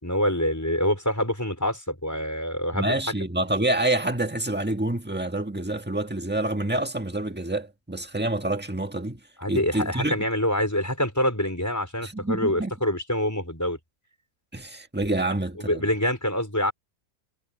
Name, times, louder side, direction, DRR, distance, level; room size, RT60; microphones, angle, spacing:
voice 1, 0.0-2.9 9.4-13.8 15.6-16.7, left 1 dB, 10° left, 5.2 m, -26 dB
voice 2, 2.7-9.2 9.5-10.2 12.0-12.7 14.5-15.9, right 1 dB, 5° right, 1.4 m, -27 dB
omnidirectional pair, 1.6 m